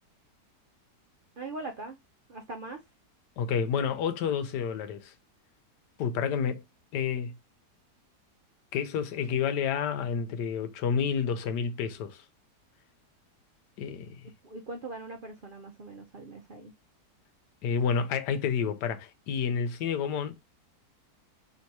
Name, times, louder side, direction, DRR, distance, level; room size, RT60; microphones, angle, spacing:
voice 1, 1.4-2.0 2.3-2.8 14.4-16.7, right 2 dB, 70° right, 0.5 m, -41 dB
voice 2, 3.4-5.1 6.0-6.6 6.9-7.3 8.7-12.2 13.8-14.3 17.6-20.4, left 7 dB, 85° left, 1.3 m, -29 dB
3.1 x 2.7 x 4.5 m
omnidirectional pair, 1.8 m